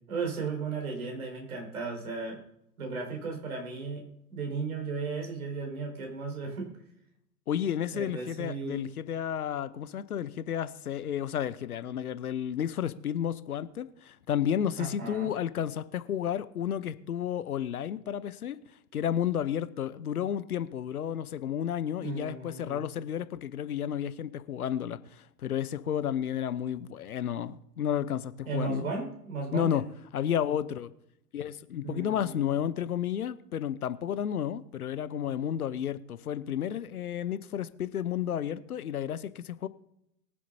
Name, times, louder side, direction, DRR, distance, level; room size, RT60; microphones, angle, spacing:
voice 1, 0.1-2.4 2.8-4.0 4.3-6.7 7.9-8.9 14.8-15.3 22.0-22.8 28.4-29.8 31.8-32.6, right 4 dB, 60° right, 4.8 m, -35 dB
voice 2, 7.5-18.6 18.9-28.9 29.5-29.8 30.1-30.9 31.3-39.7, left 9 dB, 65° left, 0.9 m, -32 dB
22.5 x 7.6 x 2.7 m
figure-of-eight pair, 110°, 48 cm